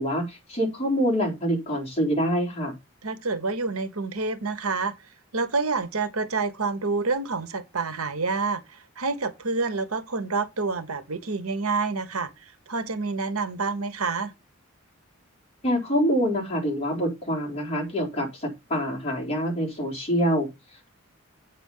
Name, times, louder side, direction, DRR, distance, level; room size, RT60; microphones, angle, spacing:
voice 1, 0.0-2.7 15.6-20.5, equal, 30° left, 4.2 m, -25 dB
voice 2, 3.0-4.9 5.3-14.3, right 4 dB, 90° right, 1.3 m, -28 dB
8.4 x 6.2 x 5.5 m
head